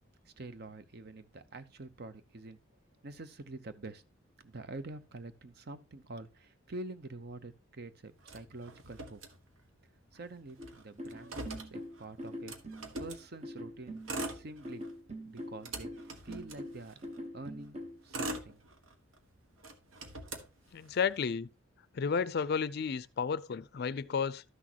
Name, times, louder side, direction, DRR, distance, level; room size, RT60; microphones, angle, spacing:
voice 1, 0.2-2.6 3.0-4.0 4.4-9.2 10.1-12.5 13.0-14.0 14.3-14.9 15.2-17.0 17.3-17.8 18.0-18.6, right 2 dB, 50° right, 0.7 m, -46 dB
Motor vehicle (road), 8.2-9.9 10.2-10.3 10.5-13.3 13.9-15.0 15.4-17.2 17.8-19.2 19.6-21.2, right 2 dB, 85° right, 1.2 m, -43 dB
sound 1, 10.6-18.3, equal, 35° right, 1.1 m, -44 dB
voice 2, 20.7-21.5 21.9-24.4, left 6 dB, 55° left, 0.4 m, -32 dB
12.5 x 6.2 x 2.9 m
head